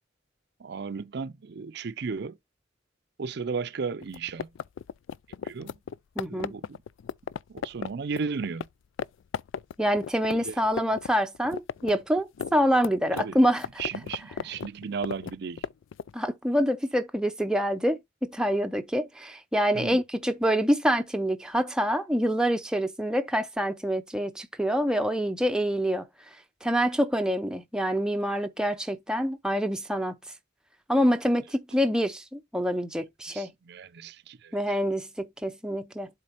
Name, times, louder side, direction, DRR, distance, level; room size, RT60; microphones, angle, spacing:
voice 1, 0.6-2.4 3.2-4.5 5.4-5.7 6.3-6.8 7.5-8.6 10.3-10.6 13.2-13.4 13.8-15.7 19.7-20.0 33.3-34.6, right 5 dB, 60° right, 0.5 m, -35 dB
sound 1, 4.0-8.7 9.0-9.1 9.3-11.1 11.3-16.1, left 7 dB, 90° left, 0.3 m, -35 dB
voice 2, 6.2-6.6 9.8-13.7 16.1-26.1 26.6-30.1 30.9-33.5 34.5-36.1, equal, 5° right, 0.5 m, -26 dB
7.6 x 3.7 x 4.4 m
head